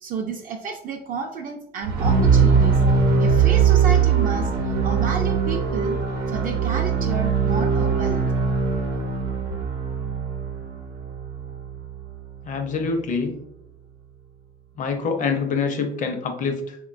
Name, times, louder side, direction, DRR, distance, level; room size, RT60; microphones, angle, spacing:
voice 1, 0.0-2.8 3.2-6.0 6.3-8.2, right 5 dB, 55° right, 2 dB, 0.4 m, -31 dB
sound 1, 1.8-11.9, right 5 dB, 90° right, 0.7 m, -21 dB
voice 2, 12.4-13.4 14.8-16.8, left 5 dB, 50° left, 5 dB, 0.6 m, -25 dB
3.6 x 2.2 x 2.4 m, 0.73 s
cardioid pair, 110°, 17 cm